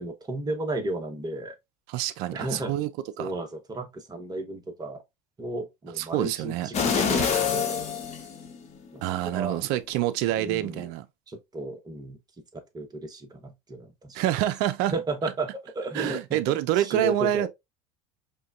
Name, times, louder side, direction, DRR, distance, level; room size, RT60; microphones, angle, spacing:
voice 1, 0.0-1.5 2.3-2.7 3.2-5.0 5.4-7.8 8.9-9.6 10.4-10.9 11.3-12.2 12.5-14.2 14.9-17.5, right 2 dB, 20° right, 1.0 m, -34 dB
voice 2, 1.9-2.9 3.2-3.3 6.0-6.7 9.0-11.1 14.1-14.9 15.9-17.5, right 13 dB, 60° right, 0.5 m, -27 dB
sound 1, 6.7-8.9 9.3-9.4, left 6 dB, 40° left, 1.0 m, -26 dB
5.0 x 2.2 x 2.3 m
hypercardioid pair, 80°, 18 cm